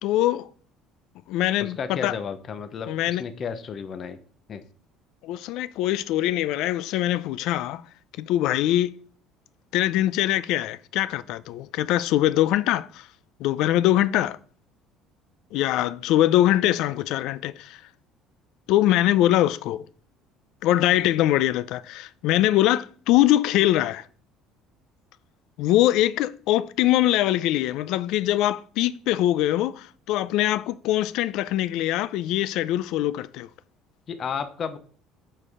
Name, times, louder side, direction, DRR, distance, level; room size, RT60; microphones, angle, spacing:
voice 1, 0.0-0.5 1.3-2.1 2.9-3.2 5.2-7.8 8.2-8.9 9.7-13.1 13.4-14.4 15.5-17.8 18.7-19.8 20.6-24.0 25.6-33.5, left 14 dB, 65° left, 0.4 m, -23 dB
voice 2, 1.6-4.2 4.5-4.6 34.1-34.8, left 6 dB, 35° left, 0.8 m, -32 dB
7.6 x 4.6 x 4.9 m
cardioid pair, 150°, 0 cm